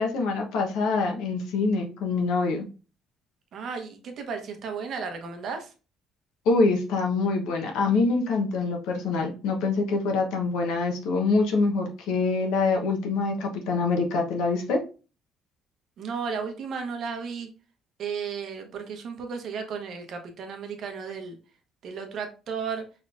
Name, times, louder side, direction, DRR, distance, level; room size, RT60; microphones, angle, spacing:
voice 1, 0.0-2.7 6.5-14.8, left 3 dB, 90° left, 2 dB, 1.0 m, -25 dB
voice 2, 3.5-5.7 16.0-17.5 18.0-21.4 21.8-22.8, right 5 dB, 55° right, 4 dB, 1.0 m, -34 dB
4.9 x 3.2 x 2.5 m, 0.34 s
cardioid pair, 145°, 0 cm